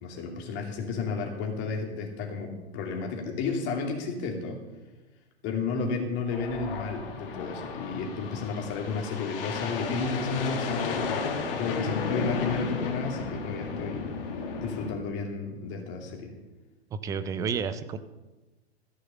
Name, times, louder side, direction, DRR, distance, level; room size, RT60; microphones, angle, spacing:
voice 1, 0.0-4.6 5.4-14.1 14.6-16.3, left 4 dB, 35° left, 2 dB, 2.6 m, -32 dB
sound 1, 6.3-14.9, left 5 dB, 55° left, 1.8 m, -33 dB
voice 2, 16.9-18.0, right 6 dB, 10° right, 12 dB, 0.4 m, -31 dB
14.0 x 6.4 x 6.9 m, 1.1 s
figure-of-eight pair, 110°, 33 cm